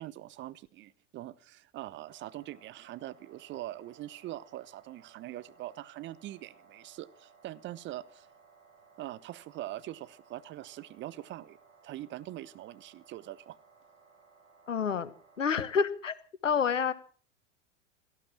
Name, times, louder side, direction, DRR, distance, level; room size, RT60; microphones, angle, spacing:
voice 1, 0.0-8.3 9.0-11.6 11.8-13.6, right 14 dB, 30° right, 17 dB, 0.9 m, -43 dB
sound 1, 2.1-15.7, right 4 dB, 80° right, 7.6 m, -61 dB
voice 2, 14.7-15.1 15.4-16.1 16.4-16.9, left 6 dB, 80° left, 14 dB, 1.4 m, -28 dB
17.5 x 13.0 x 6.0 m, 0.43 s
figure-of-eight pair, 90°, 37 cm